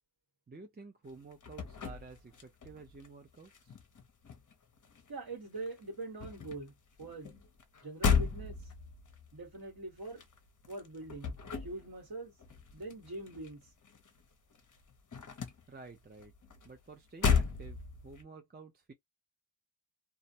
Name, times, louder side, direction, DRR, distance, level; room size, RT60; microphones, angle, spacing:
voice 1, 0.5-3.8 15.7-16.3 16.6-18.9, right 3 dB, 20° right, 0.5 m, -51 dB
sound 1, 1.1-3.1 3.3-5.3 5.6-14.2 14.5-18.2, left 5 dB, 40° left, 0.7 m, -35 dB
voice 2, 5.1-6.7 7.0-7.4 7.8-8.6 9.3-10.2 10.7-11.3 11.6-12.3 12.7-13.6, right 2 dB, 45° right, 1.4 m, -43 dB
2.3 x 2.1 x 2.7 m
wide cardioid pair, 100°, 50 cm